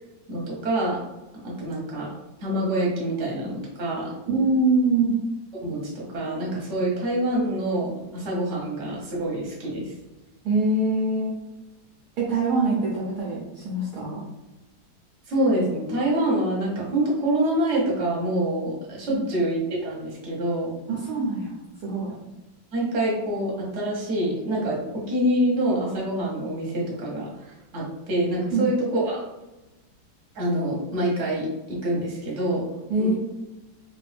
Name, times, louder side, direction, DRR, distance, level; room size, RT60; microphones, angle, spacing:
voice 1, 0.3-1.0 1.4-2.1 2.4-4.1 5.6-9.9 15.3-20.7 22.7-29.2 30.3-32.6 33.0-33.1, right 1 dB, 45° right, -4 dB, 1.3 m, -26 dB
voice 2, 4.3-5.2 10.4-11.4 12.2-14.2 19.1-19.2 20.9-21.5 21.8-22.1 28.5-28.7 32.9-33.1, right 2 dB, 60° right, -5 dB, 1.2 m, -24 dB
3.6 x 2.6 x 3.4 m, 1.0 s
omnidirectional pair, 2.1 m